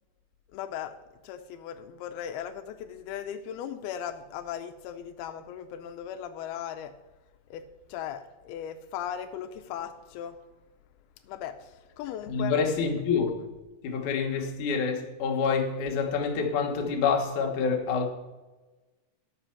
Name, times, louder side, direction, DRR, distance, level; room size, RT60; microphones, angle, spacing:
voice 1, 0.5-0.9 1.2-6.9 7.5-7.6 7.9-10.4 11.3-12.5, left 9 dB, 85° left, 2.5 m, -37 dB
voice 2, 12.3-13.4 13.8-18.1, left 5 dB, 60° left, 2.4 m, -27 dB
10.0 x 7.5 x 5.8 m
omnidirectional pair, 4.3 m